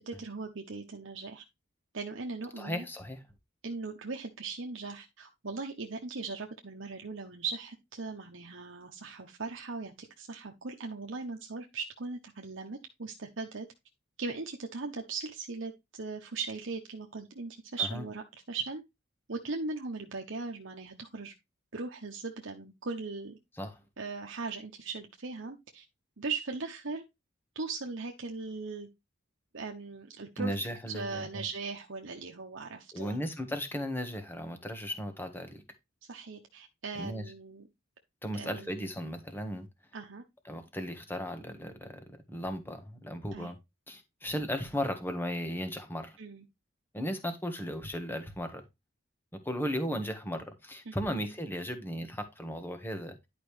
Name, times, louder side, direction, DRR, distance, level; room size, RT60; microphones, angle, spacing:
voice 1, 0.1-1.4 1.9-2.9 3.6-13.7 14.2-18.8 19.3-21.3 21.7-23.4 24.0-25.8 26.2-27.0 27.5-28.9 29.5-30.6 30.9-33.2 36.1-37.7 38.4-38.7 39.9-40.2 43.3-43.5 46.2-46.4 50.9-51.1, right 4 dB, 70° right, 1.0 m, -39 dB
voice 2, 2.6-3.2 17.8-18.0 23.6-23.8 30.4-31.4 32.9-35.6 36.9-37.2 38.2-39.7 40.4-43.6 43.9-46.2 46.9-48.6 49.4-53.3, equal, 10° left, 1.4 m, -36 dB
11.0 x 5.1 x 3.3 m
head